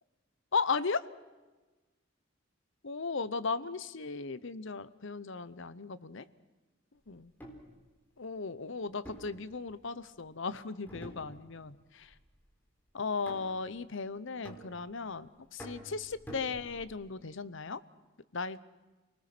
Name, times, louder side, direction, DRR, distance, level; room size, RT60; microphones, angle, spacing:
voice 1, 0.5-1.0 2.8-6.2 7.1-7.3 8.2-12.1 12.9-17.8 18.3-18.6, left 4 dB, 65° left, 15 dB, 0.9 m, -36 dB
sound 1, 7.2-7.7 9.0-10.1 10.9-11.7 12.0-12.4 13.3-13.8 14.4-15.1 15.6-17.0, equal, 10° left, 4.0 m, -48 dB
29.5 x 20.0 x 6.1 m, 1.2 s
head